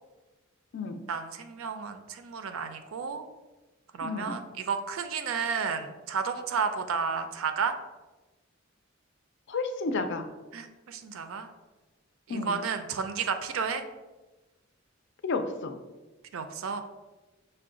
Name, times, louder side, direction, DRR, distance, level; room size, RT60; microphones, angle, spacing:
voice 1, 1.1-3.2 3.9-7.7 10.5-11.5 12.3-13.8 16.3-16.8, right 6 dB, 85° right, 8 dB, 0.4 m, -32 dB
voice 2, 4.0-4.3 9.5-10.3 12.3-12.6 15.2-15.8, left 3 dB, 60° left, 7 dB, 0.4 m, -31 dB
5.6 x 2.2 x 3.7 m, 1.2 s
head